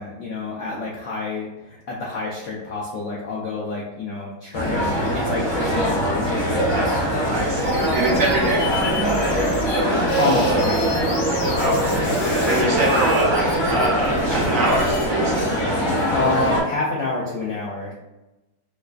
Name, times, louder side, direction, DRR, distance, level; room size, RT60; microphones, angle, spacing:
voice 1, 0.0-7.0 10.2-11.1 16.1-18.0, left 3 dB, 70° left, -4 dB, 0.7 m, -28 dB
sound 1, 4.5-16.6, equal, 40° left, 0.3 m, -22 dB
voice 2, 7.3-8.7 11.6-15.5, right 2 dB, 60° right, -3 dB, 1.0 m, -24 dB
sound 2, 7.6-9.8 10.1-15.1, left 1 dB, 90° left, 1.8 m, -33 dB
4.4 x 2.4 x 2.3 m, 1.0 s
omnidirectional pair, 1.8 m